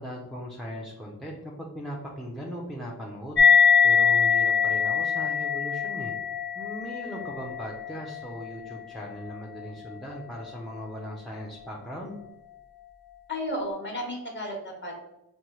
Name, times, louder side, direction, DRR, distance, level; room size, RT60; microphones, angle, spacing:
voice 1, 0.0-3.4 3.8-6.1 6.5-12.2, equal, ahead, -3 dB, 0.5 m, -38 dB
sound 1, 3.4-10.3, left 6 dB, 80° left, 0.9 m, -24 dB
voice 2, 13.3-15.1, equal, 30° left, 0 dB, 1.1 m, -33 dB
5.4 x 2.7 x 3.0 m, 0.91 s
wide cardioid pair, 140°, 38 cm